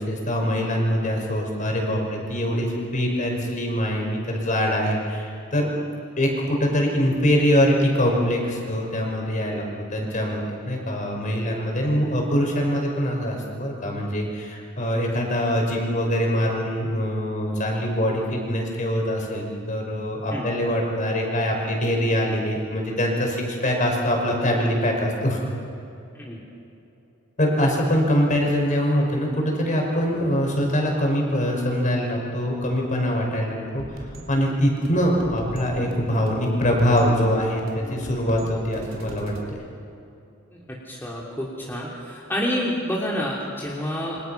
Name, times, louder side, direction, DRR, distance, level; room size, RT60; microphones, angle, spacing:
voice 1, 0.0-5.7 6.2-9.6 9.9-25.4 27.4-39.6, equal, 40° left, 1 dB, 5.7 m, -23 dB
sound 1, 33.8-39.4, right 1 dB, 70° right, 3.9 m, -39 dB
voice 2, 40.8-44.2, equal, 10° left, -4 dB, 3.0 m, -28 dB
29.0 x 25.5 x 5.9 m, 2.8 s
head